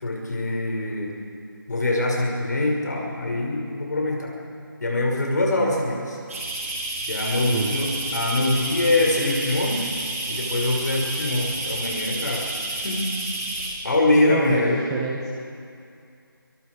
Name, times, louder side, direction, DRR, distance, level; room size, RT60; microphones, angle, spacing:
voice 1, 0.0-1.1 1.7-4.3 4.8-6.2 7.1-9.8 10.3-12.4 12.7-13.1 13.8-14.8, left 2 dB, 50° left, -1 dB, 6.2 m, -23 dB
sound 1, 6.3-13.7, right 2 dB, 40° right, 5.4 m, -30 dB
voice 2, 7.5-8.0 14.3-15.3, right 5 dB, 10° right, -1 dB, 1.0 m, -29 dB
26.5 x 22.5 x 4.9 m, 2.4 s
figure-of-eight pair, 165°, 12 cm